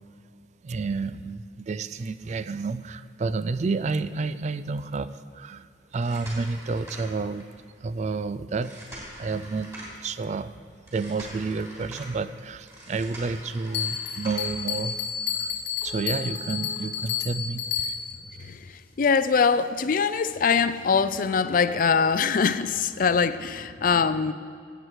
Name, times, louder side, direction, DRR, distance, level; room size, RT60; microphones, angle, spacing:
voice 1, 0.6-7.5 7.8-8.7 9.2-9.7 10.0-10.5 10.9-15.0 15.3-15.6 15.8-18.0, right 4 dB, 40° right, 14 dB, 0.3 m, -30 dB
sound 1, 5.8-7.6 8.5-10.1 10.9-12.1 12.7-14.6 15.8-17.7 18.1-18.2 18.8-18.9 19.3-19.5 19.7-19.8 20.2-20.3 20.6-20.7 21.1-22.1 23.2-23.3, right 1 dB, 20° right, 3.1 m, -44 dB
Bell, 13.7-18.3, left 8 dB, 80° left, 1.5 m, -31 dB
voice 2, 19.0-24.3, left 5 dB, 50° left, 13 dB, 0.4 m, -23 dB
16.0 x 8.0 x 4.7 m, 2.3 s
head